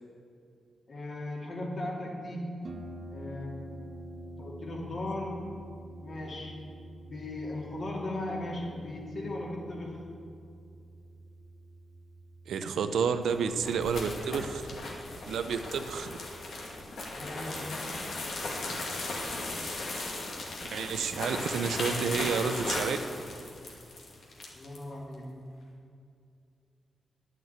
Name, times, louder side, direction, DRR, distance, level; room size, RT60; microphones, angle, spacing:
voice 1, 0.9-2.6 3.1-3.6 4.4-5.4 6.0-6.5 7.0-10.0 17.1-17.8 24.6-25.5, left 1 dB, 55° left, -2 dB, 2.7 m, -37 dB
Harp, 2.6-20.1, right 1 dB, 50° right, 0.8 m, -49 dB
voice 2, 12.5-14.6 15.3-16.2 20.7-23.0, right 6 dB, 85° right, 9 dB, 0.6 m, -30 dB
sound 1, 13.1-24.8, left 2 dB, 75° left, 2.1 m, -37 dB
9.4 x 7.7 x 8.2 m, 2.4 s
cardioid pair, 60°, 0 cm